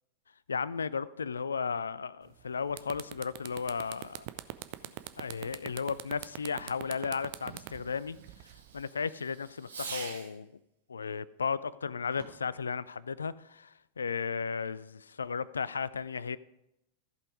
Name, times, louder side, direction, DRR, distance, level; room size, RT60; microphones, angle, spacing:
voice 1, 0.5-4.2 5.2-8.2 8.7-10.5 10.9-16.4, left 5 dB, 75° left, 19 dB, 0.3 m, -35 dB
sound 1, 2.3-2.4 2.7-8.8, right 18 dB, 45° right, 0.5 m, -42 dB
Fireworks, 3.4-10.5 12.1-12.6, right 5 dB, 70° right, 1.4 m, -49 dB
14.5 x 5.5 x 4.8 m, 0.85 s
figure-of-eight pair, 90°, 0 cm